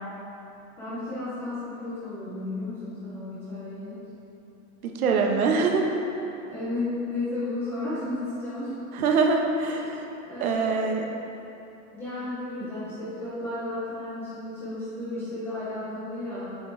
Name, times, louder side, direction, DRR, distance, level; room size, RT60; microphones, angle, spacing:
voice 1, 0.8-3.9 6.5-8.8 10.2-10.8 11.9-16.6, left 2 dB, 5° left, -11 dB, 0.4 m, -33 dB
voice 2, 5.0-5.8 9.0-10.0 10.4-11.1, right 4 dB, 80° right, 2 dB, 1.1 m, -23 dB
7.8 x 7.7 x 3.2 m, 2.9 s
supercardioid pair, 165°, 42 cm